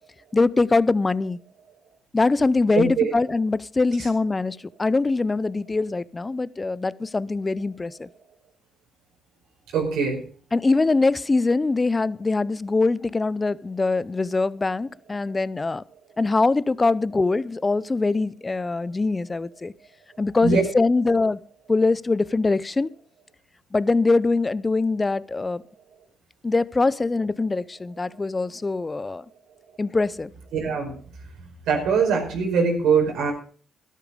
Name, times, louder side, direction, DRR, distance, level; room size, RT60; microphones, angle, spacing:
voice 1, 0.3-1.4 2.1-8.1 10.5-15.8 16.2-19.7 20.2-21.4 21.7-22.9 23.7-25.6 26.4-29.2 29.8-30.3, left 3 dB, 25° left, 0.6 m, -23 dB
voice 2, 2.7-3.1 9.7-10.2 20.4-20.6 30.5-30.9 31.7-33.3, right 5 dB, 85° right, 5.1 m, -22 dB
13.0 x 12.0 x 5.1 m
cardioid pair, 90°, 0 cm